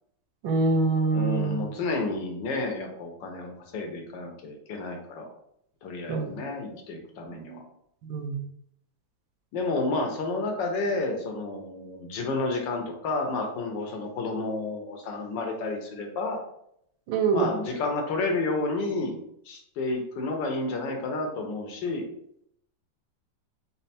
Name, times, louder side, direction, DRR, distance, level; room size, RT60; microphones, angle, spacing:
voice 1, 0.4-1.6 6.1-6.4 7.4-7.6 8.1-8.4 17.1-17.5, right 4 dB, 85° right, 3 dB, 1.5 m, -25 dB
voice 2, 1.1-5.3 5.8-7.6 9.5-16.4 17.3-19.2 19.5-22.1, left 3 dB, 75° left, 3 dB, 1.4 m, -30 dB
4.2 x 2.0 x 4.1 m, 0.72 s
omnidirectional pair, 2.1 m